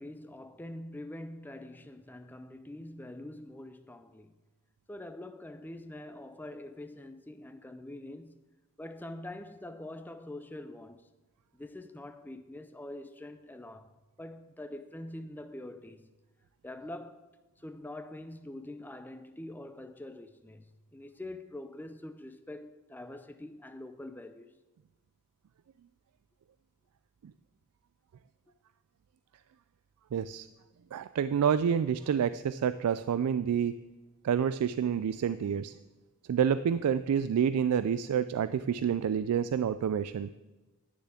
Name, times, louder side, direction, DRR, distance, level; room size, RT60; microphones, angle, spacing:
voice 1, 0.0-4.4 4.9-8.5 8.8-11.1 11.5-13.9 14.2-16.1 16.6-17.3 17.6-24.5, left 1 dB, 10° left, 0.4 m, -44 dB
voice 2, 30.1-30.5 30.9-33.7 34.2-35.7 36.3-40.3, right 8 dB, 85° right, 0.3 m, -28 dB
9.7 x 6.8 x 8.3 m
head